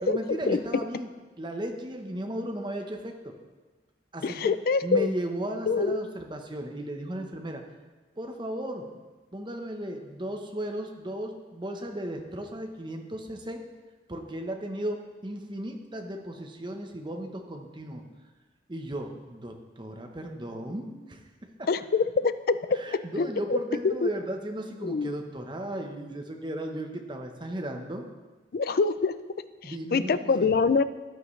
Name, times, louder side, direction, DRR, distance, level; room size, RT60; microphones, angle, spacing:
voice 1, 0.0-1.1 1.4-3.3 4.1-4.5 4.8-7.6 8.2-9.0 9.3-13.6 14.1-18.0 18.7-21.3 21.6-21.7 22.7-28.1 29.6-30.5, right 1 dB, 25° right, 3 dB, 1.0 m, -35 dB
voice 2, 4.2-5.1 5.7-6.0 21.7-22.6 23.2-23.6 23.8-24.1 24.8-25.2 28.5-29.1 29.6-30.8, left 4 dB, 55° left, 13 dB, 0.4 m, -25 dB
14.0 x 9.9 x 3.3 m, 1.3 s
head